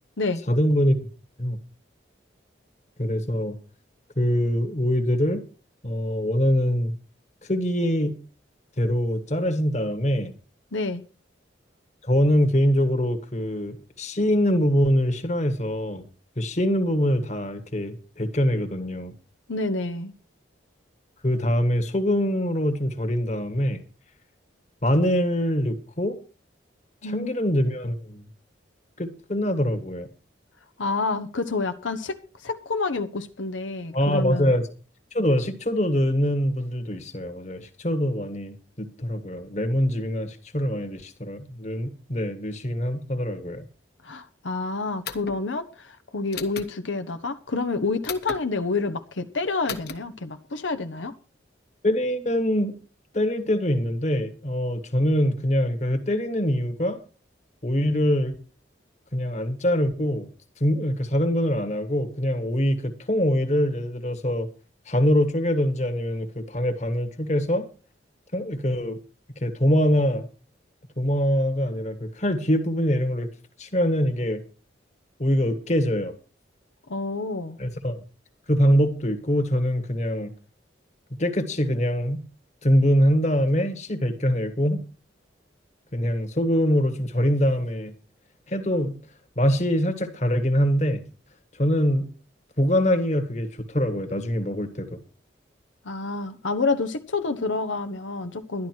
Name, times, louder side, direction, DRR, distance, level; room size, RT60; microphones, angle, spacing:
voice 1, 0.5-1.0 1.4-1.6 3.0-3.6 4.2-5.4 5.8-6.9 7.5-8.2 8.8-10.3 12.0-16.0 16.4-19.1 21.2-23.8 24.8-26.2 27.0-28.3 29.0-30.1 33.9-34.6 35.1-43.6 51.8-52.8 53.1-57.0 57.6-58.3 59.1-60.3 60.6-64.5 64.9-67.7 68.3-69.0 69.4-70.3 71.0-73.3 73.6-74.4 75.2-76.1 77.6-78.0 78.5-80.3 81.2-82.2 82.6-84.8 85.9-87.9 88.5-89.0 89.4-91.0 91.6-92.1 92.6-95.0, equal, 40° left, 1.5 m, -24 dB
voice 2, 10.7-11.0 19.5-20.1 27.0-27.4 30.8-32.2 32.4-34.5 44.0-51.1 76.9-77.6 95.8-98.7, left 3 dB, 90° left, 1.0 m, -28 dB
sound 1, 45.0-45.4 46.3-46.7 48.0-48.4 49.7-50.0, left 6 dB, 55° left, 1.3 m, -35 dB
11.5 x 11.5 x 4.6 m
head